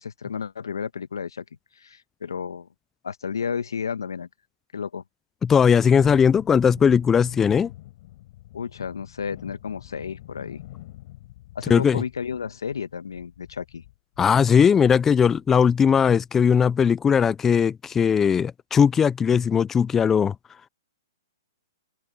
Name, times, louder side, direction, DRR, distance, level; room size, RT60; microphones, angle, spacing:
voice 1, 0.0-1.4 1.7-2.7 3.0-4.3 4.7-5.0 8.5-10.6 11.5-13.8, left 6 dB, 85° left, 1.5 m, -32 dB
voice 2, 5.4-7.7 11.7-12.0 14.2-20.3, left 7 dB, 15° left, 0.5 m, -19 dB
Thunderstorm, 6.0-16.2 16.6-16.7, left 16 dB, 50° left, 6.5 m, -46 dB
open air
hypercardioid pair, 130°, 2 cm